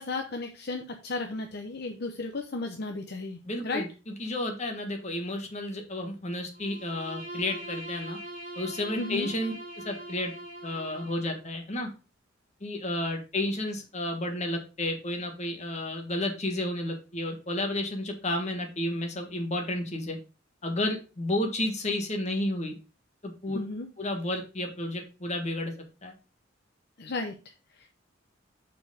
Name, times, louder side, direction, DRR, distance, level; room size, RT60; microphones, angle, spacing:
voice 1, 0.0-3.4 3.6-3.8 9.0-9.3 23.5-23.9 27.0-27.9, left 3 dB, 55° left, 4 dB, 0.7 m, -34 dB
voice 2, 3.4-3.9 4.2-8.2 8.5-10.3 10.6-11.9 12.6-20.2 20.6-22.7 23.2-23.6 24.0-25.7 26.0-26.1, left 1 dB, 35° left, 3 dB, 1.6 m, -31 dB
Bowed string instrument, 6.5-11.5, right 1 dB, 45° right, 2.2 m, -42 dB
6.2 x 4.5 x 5.2 m, 0.32 s
head